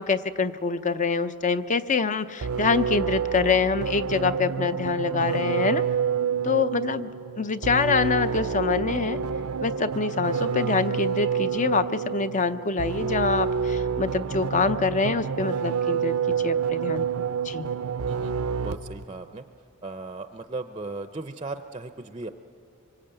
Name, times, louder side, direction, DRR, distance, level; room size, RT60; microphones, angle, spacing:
voice 1, 0.0-5.8 6.4-9.2 9.6-17.7, left 4 dB, 35° left, 12 dB, 0.6 m, -25 dB
sound 1, 2.4-19.0, right 6 dB, 80° right, 0.6 m, -28 dB
voice 2, 18.6-19.4 19.8-22.3, right 3 dB, 25° right, 9 dB, 0.6 m, -36 dB
25.0 x 24.0 x 8.9 m, 2.8 s
head